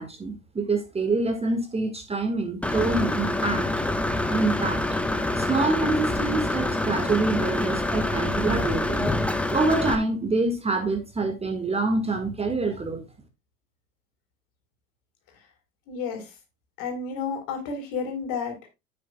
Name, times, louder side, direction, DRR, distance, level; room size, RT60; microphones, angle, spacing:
voice 1, 0.0-3.7 4.3-4.8 5.4-9.1 9.5-13.0, right 3 dB, 15° right, 1.6 m, -26 dB
Engine / Mechanisms, 2.6-10.0, left 2 dB, 5° left, 1.0 m, -26 dB
voice 2, 15.9-16.3 16.8-18.7, left 5 dB, 55° left, 3.7 m, -31 dB
9.3 x 8.7 x 2.2 m
hypercardioid pair, 80°, 40 cm